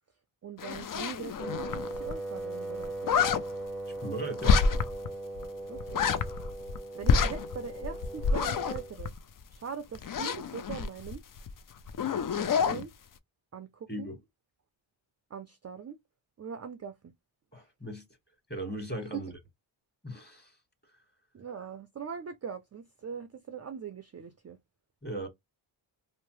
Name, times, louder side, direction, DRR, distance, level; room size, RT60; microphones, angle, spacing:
voice 1, 0.4-3.1 5.7-6.1 6.9-9.1 9.5-11.2 12.4-12.9 13.5-14.1 15.3-16.0 16.4-17.1 19.1-19.3 21.3-24.6, right 7 dB, 35° right, 0.4 m, -41 dB
sound 1, 0.6-2.1 2.4-2.5 2.7-3.4 4.4-5.1 5.4-5.5 5.8-6.8 7.0-9.5 9.9-11.5 11.8-12.8, left 5 dB, 45° left, 0.5 m, -28 dB
Wind instrument woodwind instrument, 1.4-9.0, right 2 dB, ahead, 0.7 m, -39 dB
voice 2, 3.9-4.6 13.9-14.2 17.5-18.0 18.5-19.3 20.0-20.6 25.0-25.3, right 1 dB, 20° left, 1.5 m, -37 dB
2.7 x 2.1 x 3.0 m
cardioid pair, 60°, 49 cm